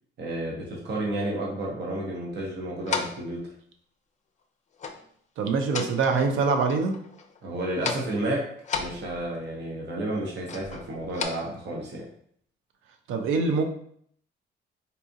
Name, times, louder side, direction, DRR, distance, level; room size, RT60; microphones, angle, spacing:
voice 1, 0.2-3.4 7.4-8.5 8.7-12.0, right 1 dB, 60° right, -2 dB, 1.0 m, -31 dB
sound 1, 2.9-3.3 4.8-5.0 5.4-6.4 6.7-7.4 7.7-8.1 8.6-9.5 10.5-11.2, left 5 dB, 35° left, 0.5 m, -34 dB
voice 2, 5.4-7.0 13.1-13.6, right 4 dB, 80° right, 6 dB, 0.5 m, -24 dB
4.0 x 2.4 x 2.6 m, 0.63 s
cardioid pair, 90°, 20 cm